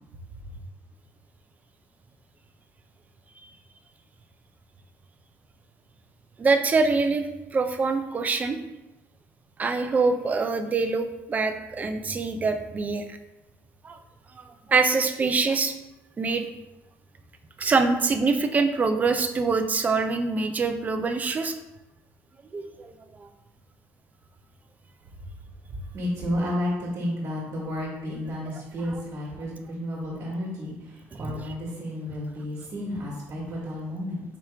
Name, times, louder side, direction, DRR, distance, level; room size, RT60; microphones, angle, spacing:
voice 1, 6.4-8.6 9.6-13.2 13.8-14.0 14.3-14.4 14.7-15.7 16.2-16.5 17.6-21.5 22.5-23.3 31.1-31.2, right 4 dB, 25° right, 7 dB, 0.4 m, -24 dB
voice 2, 25.7-34.2, left 1 dB, 50° right, -4 dB, 1.5 m, -32 dB
4.9 x 3.0 x 3.4 m, 0.96 s
cardioid pair, 115°, 6 cm